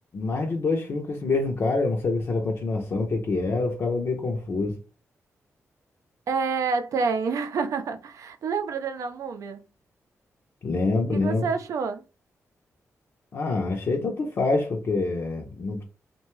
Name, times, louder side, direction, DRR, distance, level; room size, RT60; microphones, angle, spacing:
voice 1, 0.1-4.8 10.6-11.5 13.3-15.8, left 3 dB, 55° left, 0.6 m, -26 dB
voice 2, 6.3-9.6 11.1-12.0, right 5 dB, 75° right, 0.4 m, -28 dB
2.6 x 2.2 x 3.0 m
wide cardioid pair, 110°, 6 cm